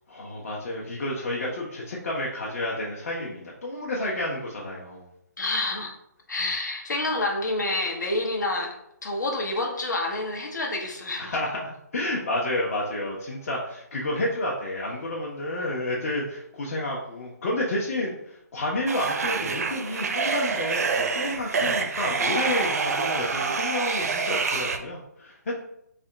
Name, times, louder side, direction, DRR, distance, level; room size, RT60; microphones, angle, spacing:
voice 1, 0.1-5.1 11.2-25.5, left 1 dB, 55° left, -4 dB, 0.7 m, -30 dB
voice 2, 5.4-5.9 6.3-8.7 9.0-11.3, left 2 dB, 85° left, 1 dB, 0.9 m, -28 dB
sound 1, 18.9-24.8, right 4 dB, 60° right, 0.4 m, -27 dB
3.4 x 2.2 x 3.8 m, 0.77 s
hypercardioid pair, 160°, 9 cm